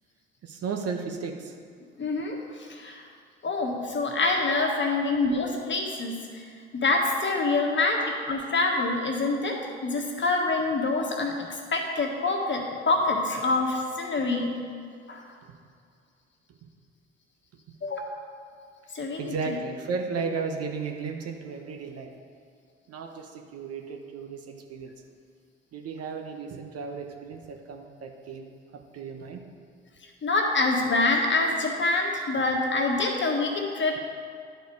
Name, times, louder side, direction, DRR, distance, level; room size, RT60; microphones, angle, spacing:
voice 1, 0.4-1.5 19.2-22.1 22.9-24.9 25.7-28.5 28.9-29.5, right 5 dB, 50° right, 3 dB, 1.0 m, -34 dB
voice 2, 2.0-3.0 3.4-6.4 6.7-14.6 15.1-15.3 17.8-18.0 18.9-19.6 30.2-34.0, left 3 dB, 35° left, 1 dB, 1.5 m, -26 dB
11.0 x 4.6 x 4.7 m, 2.2 s
hypercardioid pair, 50°, 32 cm